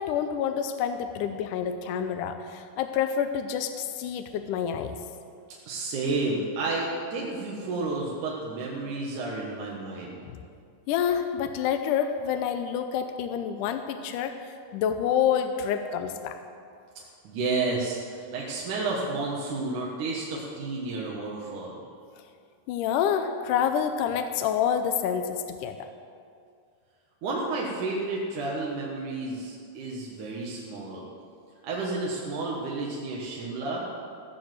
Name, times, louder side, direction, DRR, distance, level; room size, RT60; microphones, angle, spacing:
voice 1, 0.0-5.0 10.2-10.4 10.9-16.4 22.7-25.9, left 8 dB, 80° left, 8 dB, 1.9 m, -28 dB
voice 2, 5.7-10.2 17.2-21.8 27.2-31.0 31.6-33.8, right 3 dB, 65° right, -4 dB, 2.7 m, -31 dB
16.5 x 7.3 x 7.7 m, 2.3 s
omnidirectional pair, 4.3 m